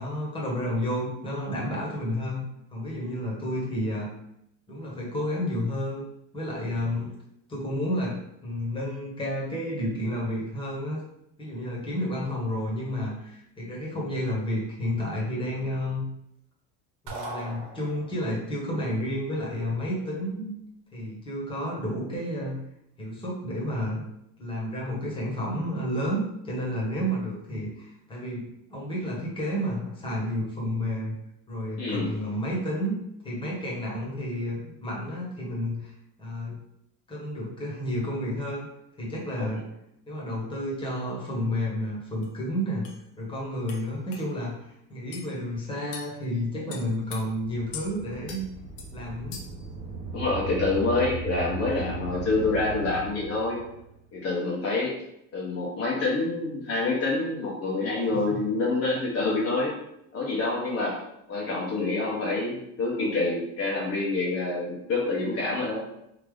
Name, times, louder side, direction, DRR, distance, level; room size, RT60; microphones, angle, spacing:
voice 1, 0.0-2.5 2.7-4.1 4.7-6.0 6.3-7.1 7.5-11.0 11.4-16.1 17.0-20.5 20.9-22.6 23.0-24.0 24.4-31.1 31.5-32.9 33.2-35.9 36.2-36.6 37.1-38.7 39.0-39.6 40.1-42.9 43.2-48.5 48.9-49.4 58.3-58.4, equal, 15° left, -4 dB, 1.3 m, -31 dB
sound 1, 17.1-18.4, right 2 dB, 60° right, 1.2 m, -38 dB
voice 2, 31.8-32.1 50.1-53.6 54.1-54.9 55.3-59.8 60.1-61.0 61.3-65.8, left 3 dB, 40° left, -4 dB, 1.0 m, -27 dB
sound 2, 42.2-42.3 42.8-43.0 43.7-43.8 44.1-44.2 45.1-45.3 45.9-46.1 46.7-47.2 47.7-47.9 48.3-48.4 48.8-48.9 49.3-49.6, left 6 dB, 85° left, 0.9 m, -40 dB
sound 3, 47.4-54.0, right 5 dB, 20° right, 0.9 m, -37 dB
3.3 x 2.8 x 3.7 m, 0.78 s
cardioid pair, 125°, 37 cm